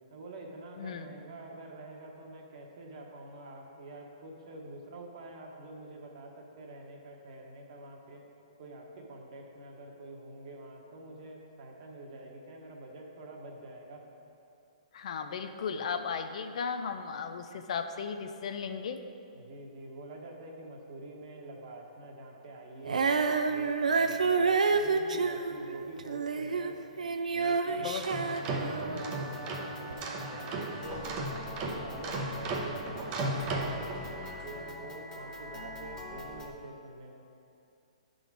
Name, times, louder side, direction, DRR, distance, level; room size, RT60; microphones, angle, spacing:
voice 1, 0.1-8.2 8.6-14.0 19.3-23.7 24.0-26.8 27.3-27.9 28.2-31.3 31.6-37.1, right 2 dB, 55° right, 0 dB, 1.3 m, -46 dB
voice 2, 14.9-19.0 27.8-28.5 28.9-29.2, left 6 dB, 60° left, 8 dB, 0.5 m, -36 dB
Female singing, 22.8-29.2 29.9-30.0, right 4 dB, 90° right, 0.5 m, -29 dB
sound 1, 27.8-34.5, right 2 dB, 30° right, 0.7 m, -36 dB
sound 2, 29.0-36.5, left 2 dB, 15° left, 0.8 m, -45 dB
10.0 x 3.9 x 4.8 m, 2.6 s
hypercardioid pair, 140°, 4 cm